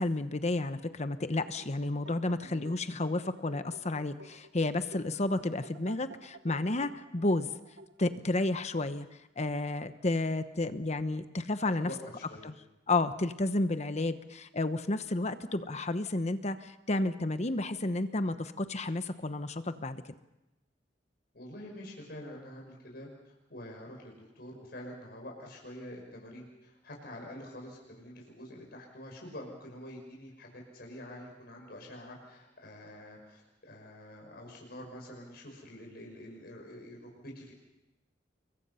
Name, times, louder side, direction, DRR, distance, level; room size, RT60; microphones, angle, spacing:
voice 1, 0.0-7.5 8.0-9.1 9.4-11.9 12.4-12.6 12.9-20.0, left 2 dB, 40° left, 10 dB, 1.0 m, -31 dB
sound 1, 1.3-9.0, right 1 dB, 90° right, 1.3 m, -53 dB
voice 2, 11.8-12.5 21.3-37.5, left 1 dB, 60° left, 0 dB, 5.8 m, -46 dB
29.5 x 23.0 x 5.7 m, 0.96 s
head